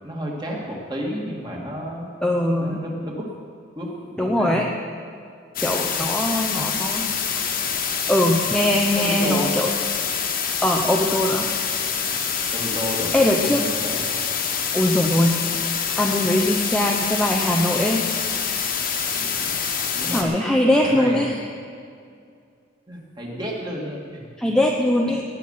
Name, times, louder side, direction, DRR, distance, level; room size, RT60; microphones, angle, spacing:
voice 1, 0.0-2.1 2.6-3.3 3.8-3.9 4.2-4.7 8.9-9.5 12.5-14.0 19.2-19.7 20.0-20.3 20.7-21.2 22.9-24.5 25.0-25.2, equal, 20° right, -2 dB, 2.5 m, -31 dB
voice 2, 2.2-2.8 4.2-4.7 5.6-7.1 8.1-9.7 10.6-11.5 13.1-13.6 14.7-18.5 20.1-21.4 24.4-25.2, left 1 dB, 5° left, 0 dB, 0.8 m, -21 dB
sound 1, 5.6-20.2, left 6 dB, 45° left, 1.5 m, -26 dB
19.5 x 9.5 x 5.8 m, 2.3 s
head